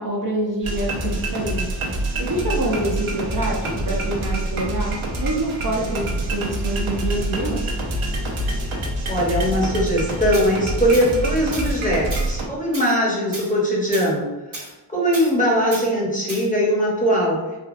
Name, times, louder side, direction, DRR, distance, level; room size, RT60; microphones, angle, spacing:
voice 1, 0.0-1.8 2.2-3.6 3.9-7.6, right 1 dB, 40° right, -3 dB, 0.6 m, -26 dB
sound 1, 0.6-12.5, right 1 dB, 75° right, 0.8 m, -26 dB
voice 2, 9.1-14.2 14.9-17.4, equal, 15° left, -4 dB, 0.9 m, -20 dB
Tools, 10.3-10.5 10.9-11.1 11.5-11.8 12.1-12.3 12.7-13.0 13.3-13.5 13.9-14.1 14.5-14.7 15.1-15.3 15.7-15.9 16.3-16.5, right 1 dB, 60° right, 1.2 m, -34 dB
3.4 x 2.3 x 2.5 m, 1.1 s
wide cardioid pair, 60°, 49 cm